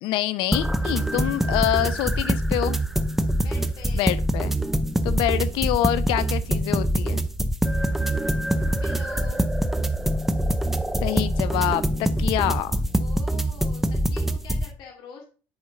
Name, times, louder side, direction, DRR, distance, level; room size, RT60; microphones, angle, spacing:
voice 1, 0.0-2.8 3.9-4.5 5.0-7.2 11.0-11.8 12.2-12.8, left 13 dB, 85° left, 14 dB, 0.6 m, -26 dB
sound 1, 0.5-14.7, right 1 dB, 5° right, 0.6 m, -24 dB
voice 2, 3.4-4.1 8.8-9.5 13.0-15.3, left 6 dB, 65° left, 1 dB, 2.6 m, -44 dB
10.5 x 5.1 x 3.9 m, 0.36 s
cardioid pair, 150°, 8 cm